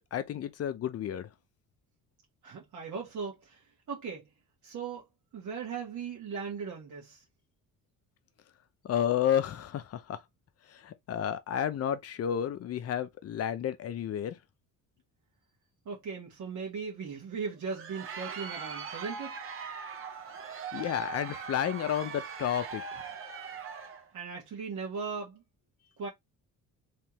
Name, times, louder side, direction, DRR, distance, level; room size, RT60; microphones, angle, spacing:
voice 1, 0.1-1.3 8.8-10.2 10.7-14.4 20.7-23.0, left 9 dB, 45° left, 0.7 m, -31 dB
voice 2, 2.4-4.3 4.6-5.0 5.3-7.2 15.8-19.3 24.1-25.4 26.0-26.1, right 5 dB, 55° right, 1.4 m, -38 dB
Crowd, 17.5-24.1, right 6 dB, 35° right, 0.9 m, -41 dB
3.5 x 3.2 x 3.0 m
cardioid pair, 140°, 35 cm